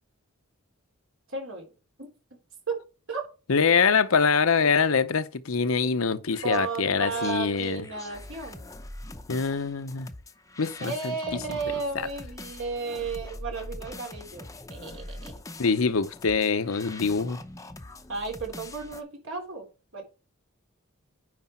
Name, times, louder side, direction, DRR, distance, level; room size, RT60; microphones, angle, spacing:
voice 1, 1.3-1.6 2.0-2.1 2.7-2.8 3.1-3.2 6.4-8.7 10.8-14.4 14.7-15.3 18.1-19.7 19.9-20.0, right 4 dB, 65° right, 3.4 m, -33 dB
voice 2, 3.5-7.9 9.3-10.1 10.6-11.1 11.9-12.1 15.6-17.4, left 5 dB, 70° left, 0.8 m, -24 dB
sound 1, 6.3-19.0, left 2 dB, 15° left, 0.7 m, -43 dB
9.6 x 5.0 x 4.4 m
head